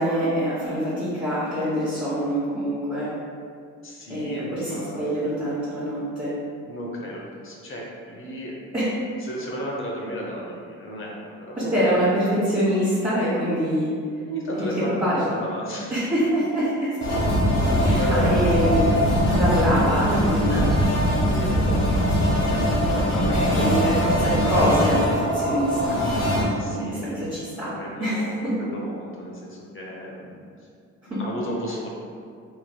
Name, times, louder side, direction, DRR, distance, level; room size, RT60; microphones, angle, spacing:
voice 1, 0.0-3.1 4.1-6.3 8.7-8.8 11.7-13.9 14.5-15.2 15.9-16.7 17.8-18.8 19.3-20.7 23.1-26.0 26.6-27.7 28.0-28.5 31.1-31.2, equal, 15° right, -14 dB, 1.3 m, -24 dB
voice 2, 3.8-5.2 6.7-8.6 9.2-11.8 14.3-16.0 17.7-18.4 21.3-22.0 22.3-23.9 26.6-27.4 27.7-30.4 31.2-31.9, equal, 45° left, -2 dB, 0.7 m, -34 dB
sound 1, 17.0-26.4, equal, 65° left, 1.0 m, -21 dB
3.0 x 3.0 x 2.3 m, 2.3 s
cardioid pair, 90°, 30 cm